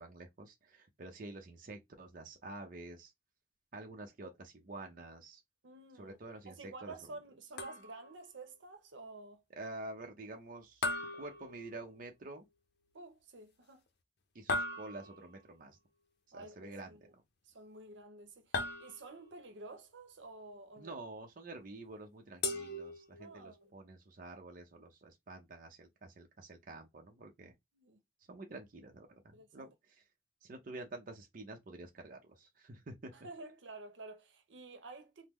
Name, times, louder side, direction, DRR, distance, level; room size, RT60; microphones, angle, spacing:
voice 1, 0.0-3.1 3.7-5.4 6.0-7.1 9.5-12.5 14.3-15.8 16.3-17.1 20.8-27.5 28.3-30.0 30.4-33.1, right 2 dB, 45° right, 0.6 m, -48 dB
voice 2, 5.6-6.2 6.5-9.4 12.9-13.8 16.3-17.0 17.5-21.0 23.2-23.7 27.7-28.0 29.3-29.7 33.1-35.3, right 3 dB, 85° right, 0.8 m, -51 dB
sound 1, 7.6-8.2 10.8-12.1 14.5-15.4 18.5-19.4 22.4-23.4, left 2 dB, 60° left, 0.6 m, -38 dB
3.6 x 2.0 x 3.0 m
head